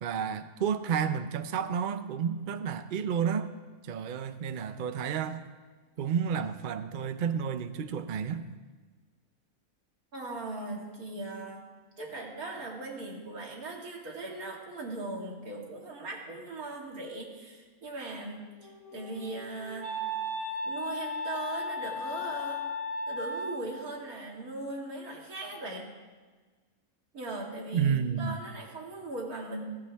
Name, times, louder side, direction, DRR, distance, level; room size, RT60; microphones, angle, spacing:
voice 1, 0.0-3.5 3.8-5.4 6.0-8.4 27.7-28.4, right 7 dB, 50° right, 10 dB, 0.6 m, -31 dB
voice 2, 10.1-11.6 12.0-19.9 20.6-22.6 23.1-25.9 27.1-29.7, right 2 dB, 80° right, -1 dB, 2.7 m, -39 dB
Wind instrument woodwind instrument, 18.4-23.9, left 1 dB, 20° left, 3.6 m, -36 dB
16.0 x 14.0 x 3.5 m, 1.4 s
omnidirectional pair, 1.5 m